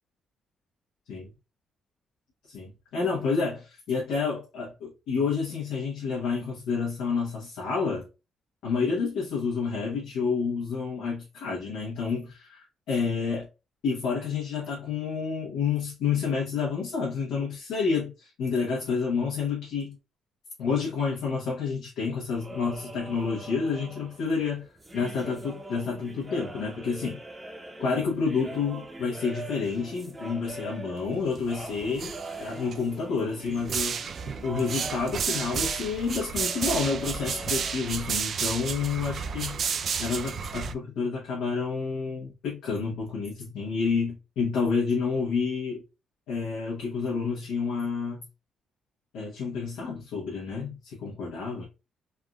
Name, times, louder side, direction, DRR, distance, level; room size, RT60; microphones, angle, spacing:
voice 1, 2.5-8.1 8.6-13.5 13.8-19.9 20.6-24.7 24.9-27.2 27.8-32.1 32.4-34.0 34.4-39.6 40.0-45.8 46.3-48.2 49.1-51.6, left 5 dB, 85° left, 1.0 m, -29 dB
sound 1, 22.3-37.7, right 2 dB, 20° right, 0.7 m, -43 dB
sound 2, 31.1-31.5 31.8-32.8 33.5-40.7, right 6 dB, 55° right, 0.3 m, -32 dB
3.4 x 2.5 x 2.3 m
cardioid pair, 90°, 0 cm